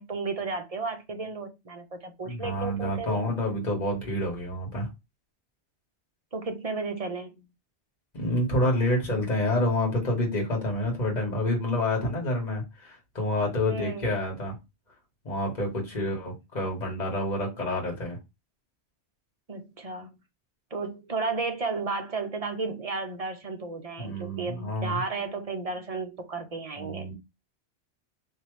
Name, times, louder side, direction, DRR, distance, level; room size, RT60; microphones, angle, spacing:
voice 1, 0.0-3.3 6.3-7.5 13.7-14.1 15.9-16.3 19.5-20.1 20.7-27.1, right 4 dB, 40° right, 0.7 m, -33 dB
voice 2, 2.2-4.9 8.1-14.5 15.2-18.2 24.0-25.0 26.8-27.1, left 1 dB, 40° left, 1.5 m, -28 dB
3.6 x 2.8 x 3.1 m
omnidirectional pair, 1.1 m